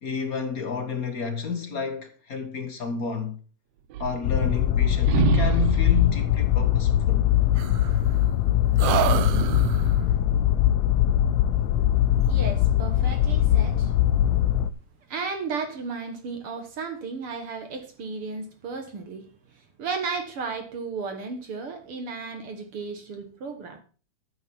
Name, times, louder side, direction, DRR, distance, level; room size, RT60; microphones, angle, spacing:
voice 1, 0.0-3.3 4.0-7.3, left 5 dB, 55° left, 1.0 m, -31 dB
sound 1, 3.9-4.8 5.1-6.2 7.6-8.4 8.8-10.0, right 10 dB, 75° right, 1.5 m, -27 dB
sound 2, 4.2-14.7, left 12 dB, 80° left, 1.6 m, -21 dB
voice 2, 12.2-13.9 15.1-19.3 19.8-23.8, right 4 dB, 55° right, 1.9 m, -34 dB
11.5 x 9.3 x 4.4 m
omnidirectional pair, 3.7 m